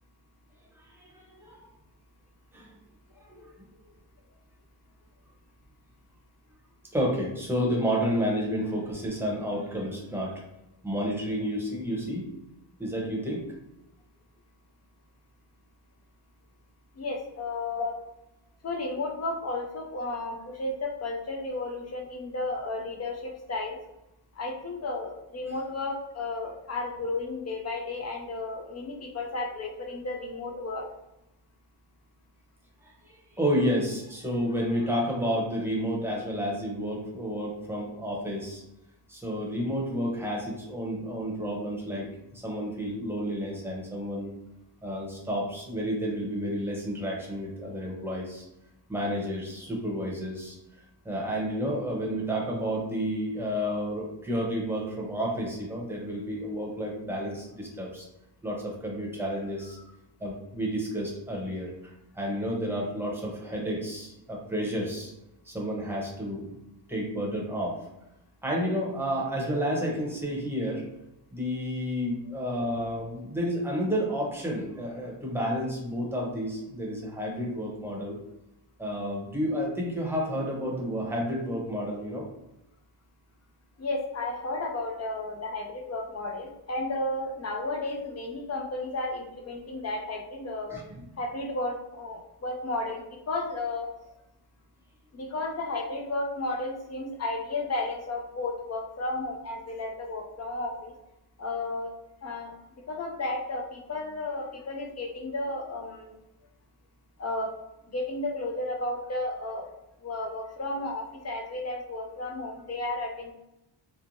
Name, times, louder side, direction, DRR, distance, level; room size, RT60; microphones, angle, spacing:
voice 1, 0.8-1.7 2.5-2.7 3.2-3.4 6.9-10.4 10.8-12.2 12.8-13.4 17.8-17.9 18.9-19.0 32.8-38.6 39.1-44.3 44.8-48.4 48.9-50.6 51.0-58.1 58.4-59.8 60.2-65.1 65.4-66.5 66.9-67.8 68.4-70.9 71.3-78.2 78.8-82.3 90.7-91.0, equal, 5° right, -3 dB, 0.8 m, -31 dB
voice 2, 17.0-17.9 18.6-23.8 24.4-30.9 83.8-90.8 91.2-93.9 95.1-100.9 101.4-101.9 102.2-102.5 102.9-106.2 107.2-107.5 107.9-109.7 110.0-113.3, left 2 dB, 35° left, 2 dB, 0.5 m, -33 dB
3.1 x 2.1 x 2.6 m, 0.89 s
cardioid pair, 105°, 49 cm